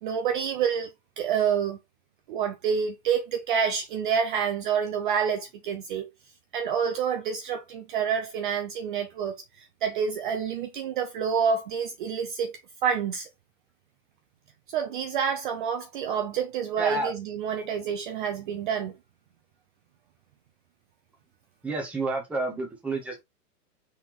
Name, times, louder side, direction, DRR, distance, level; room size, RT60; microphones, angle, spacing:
voice 1, 0.0-1.8 2.3-6.1 6.5-12.5 12.8-13.3 14.7-18.9, right 7 dB, 35° right, 0.6 m, -28 dB
voice 2, 16.8-17.1 21.6-23.2, right 2 dB, 5° right, 0.8 m, -30 dB
4.2 x 3.8 x 3.0 m
hypercardioid pair, 145°, 48 cm